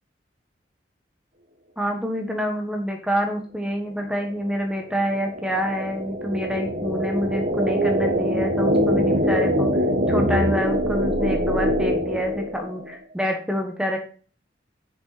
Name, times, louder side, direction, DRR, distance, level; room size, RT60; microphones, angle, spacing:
voice 1, 1.8-9.7 10.1-14.0, equal, 5° right, 3 dB, 1.4 m, -27 dB
sound 1, 4.1-12.9, equal, 50° right, 1.9 m, -23 dB
10.5 x 6.7 x 4.2 m, 0.40 s
head